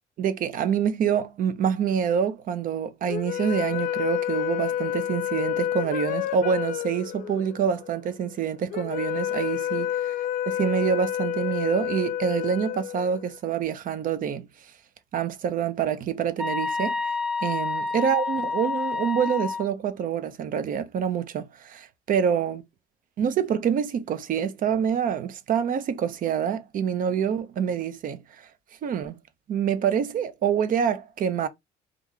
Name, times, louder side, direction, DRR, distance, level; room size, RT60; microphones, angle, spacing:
voice 1, 0.2-10.1 10.5-14.5 15.1-17.0 17.4-22.6 23.2-28.2 28.8-29.2 29.5-31.5, right 8 dB, 55° right, 0.6 m, -26 dB
sound 1, 3.1-13.5, left 11 dB, 55° left, 0.4 m, -29 dB
sound 2, 16.4-19.7, left 4 dB, 5° right, 0.5 m, -28 dB
2.9 x 2.4 x 3.5 m
cardioid pair, 110°, 17 cm